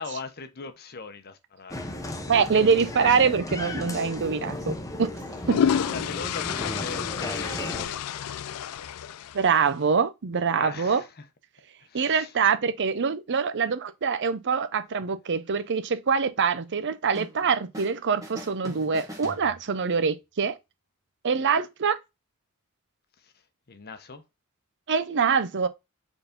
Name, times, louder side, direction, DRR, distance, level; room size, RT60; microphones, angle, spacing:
voice 1, 0.0-2.1 5.6-8.2 10.6-11.2 11.8-12.3 23.2-23.3 23.7-24.2, left 4 dB, 45° left, 0.8 m, -40 dB
Applause, 1.7-7.9, left 1 dB, 15° left, 0.9 m, -35 dB
voice 2, 2.3-4.7 5.0-5.1 5.5-5.6 9.3-11.0 11.9-20.6 21.2-22.0 24.9-25.7, right 5 dB, 55° right, 0.6 m, -24 dB
sound 1, 5.1-9.7, left 8 dB, 90° left, 0.4 m, -30 dB
sound 2, 17.1-18.0 18.2-20.0, equal, 15° right, 1.6 m, -42 dB
4.8 x 3.8 x 5.1 m
head